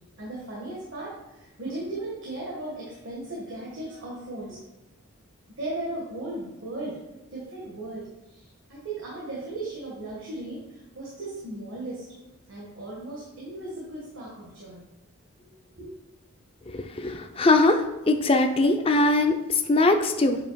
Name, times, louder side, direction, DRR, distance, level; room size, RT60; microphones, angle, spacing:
voice 1, 0.2-4.6 5.6-7.0 7.3-12.1 12.5-14.8 15.8-15.9, right 2 dB, 65° right, -5 dB, 1.5 m, -36 dB
voice 2, 16.7-17.8 18.1-20.4, left 2 dB, 25° left, 6 dB, 0.5 m, -21 dB
8.2 x 5.3 x 2.3 m, 1.1 s
head